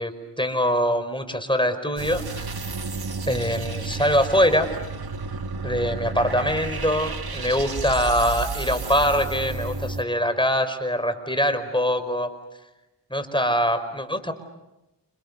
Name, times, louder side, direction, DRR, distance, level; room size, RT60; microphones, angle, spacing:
voice 1, 0.0-2.6 3.3-4.7 5.6-12.3 13.1-14.3, equal, 10° left, 9 dB, 5.0 m, -23 dB
sound 1, 2.0-10.0, right 3 dB, 60° right, 1.8 m, -31 dB
30.0 x 28.5 x 7.0 m, 0.92 s
cardioid pair, 40°, 42 cm